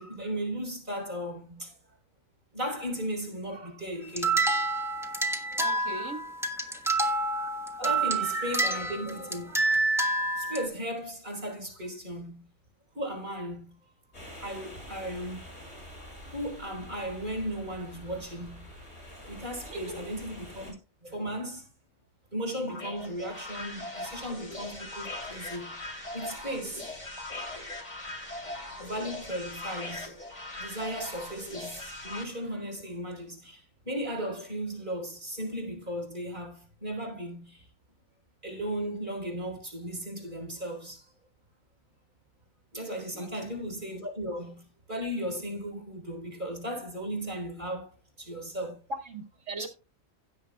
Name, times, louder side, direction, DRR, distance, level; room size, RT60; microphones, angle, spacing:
voice 1, 0.0-1.8 2.5-4.4 5.9-6.3 6.9-7.0 7.8-9.8 10.3-12.5 12.9-13.7 14.4-15.4 16.3-18.7 19.3-20.7 21.0-21.7 22.3-26.9 28.8-30.1 30.6-37.7 38.4-41.1 42.7-47.9 48.2-48.8 49.6-49.7, equal, 40° right, 4.2 m, -36 dB
sound 1, 4.0-10.7, right 2 dB, ahead, 1.2 m, -28 dB
voice 2, 5.6-6.2 7.3-7.8 19.7-20.0 43.1-43.3 49.0-49.7, right 3 dB, 85° right, 2.4 m, -40 dB
sound 2, 14.1-20.7, equal, 60° left, 7.1 m, -46 dB
sound 3, 22.7-32.2, left 2 dB, 35° left, 3.1 m, -40 dB
17.0 x 7.3 x 2.3 m
omnidirectional pair, 1.2 m